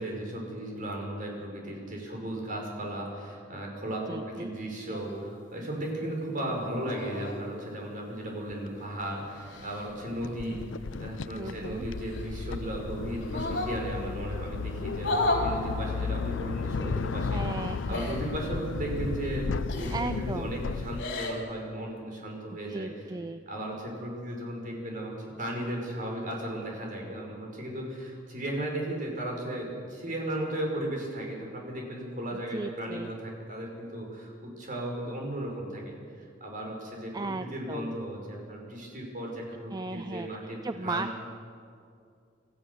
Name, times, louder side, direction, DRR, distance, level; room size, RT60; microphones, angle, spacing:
voice 1, 0.0-10.6 11.0-22.9 23.5-41.2, right 1 dB, 45° right, 0 dB, 5.4 m, -36 dB
voice 2, 4.1-4.6 6.7-6.8 11.3-11.9 17.3-18.2 19.9-20.6 22.7-23.4 32.3-33.1 37.1-38.0 39.7-40.3 40.6-41.2, right 3 dB, 20° right, 11 dB, 0.4 m, -36 dB
sound 1, 4.9-5.2 6.8-7.4 8.8-9.9 11.9-12.7 13.2-13.8 14.9-15.5 16.7-16.9 17.9-18.3 19.7-20.1 20.8-21.4, left 2 dB, 65° left, 4.0 m, -33 dB
sound 2, 8.5-8.6 9.6-21.1, left 4 dB, 85° left, 0.5 m, -34 dB
27.5 x 14.5 x 7.1 m, 2.3 s
head